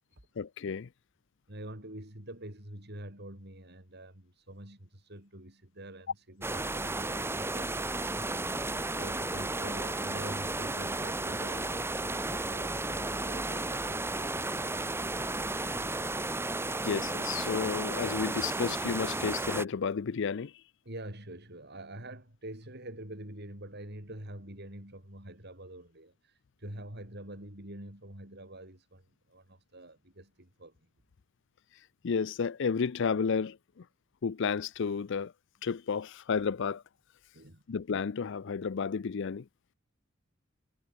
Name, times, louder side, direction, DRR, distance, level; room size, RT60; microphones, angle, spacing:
voice 1, 0.4-0.9 16.8-20.5 32.0-33.8 34.2-35.3 35.6-36.8 37.7-39.5, left 5 dB, 65° left, 0.5 m, -32 dB
voice 2, 1.5-15.3 20.8-30.8 37.3-37.6, right 1 dB, 55° right, 7.6 m, -46 dB
sound 1, 6.4-19.7, right 2 dB, 10° right, 1.2 m, -33 dB
head